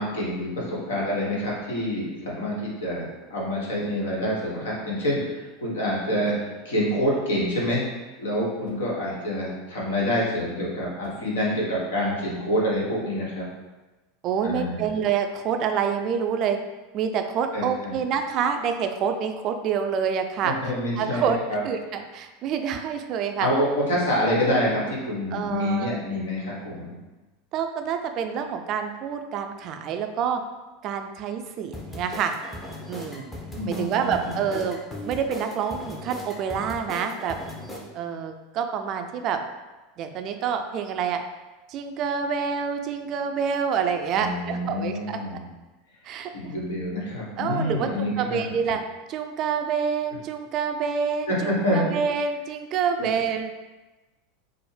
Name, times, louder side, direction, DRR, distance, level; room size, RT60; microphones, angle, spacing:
voice 1, 0.0-7.8 8.2-13.4 14.4-14.8 17.5-17.9 20.4-21.6 23.4-27.0 33.5-34.4 44.1-45.4 46.3-48.5 51.3-51.9, equal, 75° left, -4 dB, 1.1 m, -27 dB
voice 2, 14.2-16.6 16.9-20.5 21.0-21.4 21.6-23.5 25.3-25.9 27.5-30.4 30.8-32.3 32.9-33.3 33.7-37.4 37.9-39.4 40.0-41.2 41.7-45.4 46.0-46.5 47.4-48.8 49.1-53.5, right 7 dB, 45° right, 6 dB, 0.3 m, -27 dB
sound 1, 31.7-37.8, left 1 dB, 15° left, 0.7 m, -38 dB
4.2 x 2.0 x 3.2 m, 1.2 s
hypercardioid pair, 85°, 0 cm